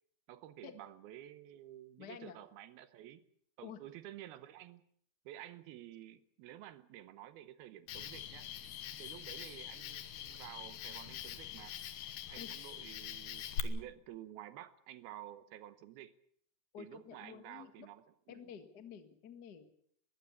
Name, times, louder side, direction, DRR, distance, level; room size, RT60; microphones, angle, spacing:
voice 1, 0.3-3.2 3.6-4.8 5.3-8.5 9.0-11.8 12.3-16.2 16.8-18.5, right 13 dB, 75° right, 13 dB, 2.8 m, -51 dB
voice 2, 2.0-2.4 3.6-3.8 12.4-12.5 16.7-17.9 18.3-19.7, left 8 dB, 50° left, 8 dB, 1.2 m, -50 dB
Cricket, 7.9-13.6, left 12 dB, 75° left, 3.2 m, -44 dB
21.0 x 16.0 x 8.5 m, 0.64 s
omnidirectional pair, 4.7 m